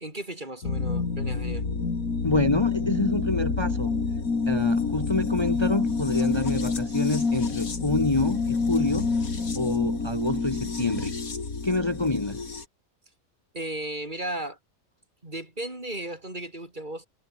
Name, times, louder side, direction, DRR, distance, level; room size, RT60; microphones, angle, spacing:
voice 1, 0.0-1.7 13.5-14.6 15.2-17.1, right 1 dB, 35° right, 4.7 m, -35 dB
sound 1, 0.6-12.6, left 4 dB, 85° left, 3.4 m, -28 dB
voice 2, 2.2-3.9 4.5-9.1 9.5-11.1 11.6-12.4, left 2 dB, 20° left, 1.4 m, -27 dB
omnidirectional pair, 1.5 m